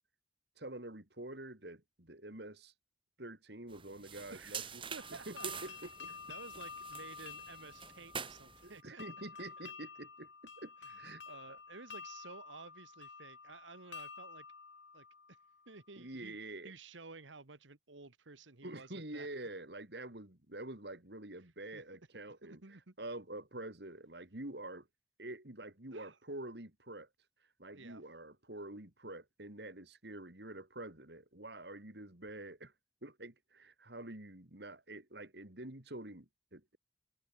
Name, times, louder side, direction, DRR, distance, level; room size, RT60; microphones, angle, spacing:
voice 1, 0.6-2.7 3.2-4.8 5.3-6.1 8.6-10.3 10.6-11.2 11.5-11.6 16.0-16.7 18.6-24.9 25.2-27.1 27.6-32.7 33.0-36.8, right 1 dB, 60° right, 3.0 m, -47 dB
sound 1, 3.7-8.8, right 7 dB, 25° right, 2.8 m, -47 dB
voice 2, 4.3-5.8 6.0-9.0 10.8-14.4 14.9-15.4 15.7-16.4 16.6-19.3 21.4-21.8 22.4-22.9 25.9-26.2 27.7-28.0, right 3 dB, 80° right, 1.8 m, -53 dB
sound 2, 5.0-15.8, left 5 dB, 75° left, 2.8 m, -51 dB
head